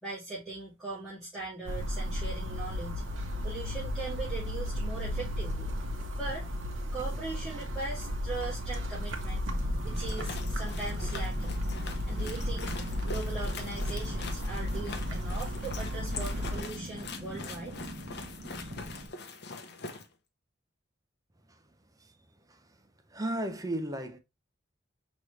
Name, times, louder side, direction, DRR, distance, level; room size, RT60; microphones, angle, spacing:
voice 1, 0.0-3.0 3.4-5.7 6.1-6.5 6.9-9.4 9.8-11.7 12.1-12.7 13.0-17.7, right 3 dB, ahead, 2.5 m, -40 dB
sound 1, 1.7-16.6, left 1 dB, 85° right, 0.9 m, -34 dB
sound 2, 9.5-19.1, equal, 55° right, 1.2 m, -43 dB
sound 3, 9.8-20.1, left 4 dB, 60° left, 0.8 m, -43 dB
voice 2, 22.0-22.8 23.1-24.2, right 1 dB, 20° right, 0.7 m, -36 dB
5.1 x 3.1 x 3.1 m
head